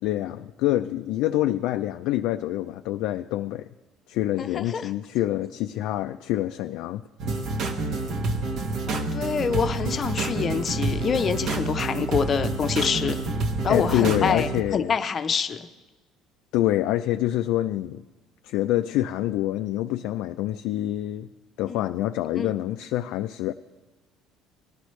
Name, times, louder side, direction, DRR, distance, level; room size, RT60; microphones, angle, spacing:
voice 1, 0.0-3.7 4.1-7.0 13.7-14.9 16.5-18.0 18.4-21.3 21.6-23.5, left 14 dB, 80° left, 7 dB, 0.3 m, -26 dB
voice 2, 4.4-4.9 8.9-13.2 13.6-15.7 21.7-21.8 22.4-22.5, left 6 dB, 35° left, 10 dB, 0.6 m, -26 dB
sound 1, 7.2-14.6, right 3 dB, 50° right, 0.9 m, -28 dB
18.0 x 11.5 x 3.2 m, 1.2 s
cardioid pair, 130°, 0 cm